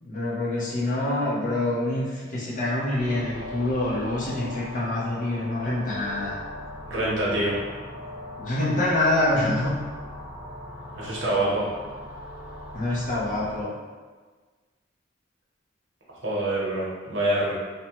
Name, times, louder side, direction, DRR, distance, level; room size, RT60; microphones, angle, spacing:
voice 1, 0.0-6.4 8.4-9.8 12.7-13.7, left 1 dB, 40° left, -6 dB, 0.7 m, -26 dB
sound 1, 3.0-13.6, left 1 dB, 5° left, 0.9 m, -39 dB
voice 2, 6.9-7.6 10.9-11.7 16.2-17.5, right 1 dB, 75° right, -6 dB, 0.9 m, -25 dB
2.7 x 2.1 x 2.9 m, 1.4 s
head